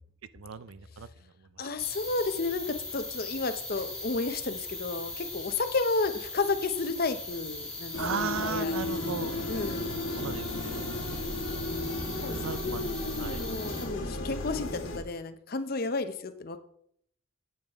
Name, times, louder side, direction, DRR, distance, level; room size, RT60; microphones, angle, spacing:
voice 1, 0.3-1.7 8.0-9.4 10.2-10.9 12.3-12.8 13.2-13.4, right 6 dB, 85° right, 15 dB, 0.5 m, -36 dB
voice 2, 1.6-8.8 9.5-9.9 12.2-16.6, left 3 dB, 45° left, 10 dB, 0.6 m, -32 dB
sound 1, 1.8-13.9, left 2 dB, 5° left, 1.7 m, -40 dB
sound 2, 7.9-15.0, left 2 dB, 80° left, 1.7 m, -34 dB
8.6 x 8.5 x 3.5 m, 0.69 s
head